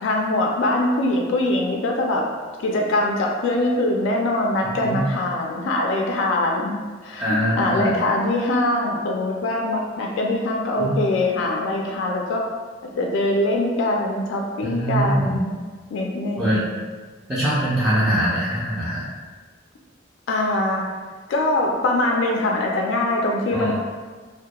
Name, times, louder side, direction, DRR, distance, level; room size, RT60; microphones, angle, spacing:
voice 1, 0.0-2.2 2.6-12.4 12.8-15.6 15.9-16.8 20.3-20.8 21.3-23.7, left 2 dB, 85° left, 0 dB, 0.3 m, -23 dB
voice 2, 7.2-8.0 10.8-11.0 14.6-15.4 16.4-16.6 17.3-19.0 23.5-23.7, equal, 10° right, -11 dB, 0.4 m, -22 dB
2.2 x 2.1 x 2.8 m, 1.4 s
head